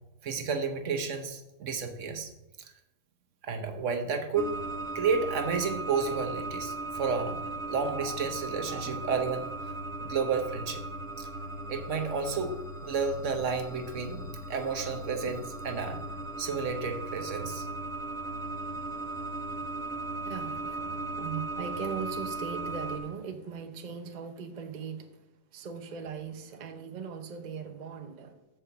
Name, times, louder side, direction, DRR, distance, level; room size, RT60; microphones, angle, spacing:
voice 1, 0.2-2.3 2.6-2.7 3.4-4.6 4.9-7.4 7.7-9.4 10.0-10.8 11.2-11.3 11.7-12.5 12.8-16.0 16.4-17.7 21.9-22.0, right 5 dB, 55° right, 6 dB, 1.0 m, -31 dB
sound 1, 4.4-23.0, right 2 dB, 5° left, 0.6 m, -37 dB
voice 2, 20.3-25.1 25.5-28.3, right 6 dB, 75° right, 6 dB, 0.4 m, -39 dB
7.5 x 4.9 x 6.7 m, 0.94 s
omnidirectional pair, 1.8 m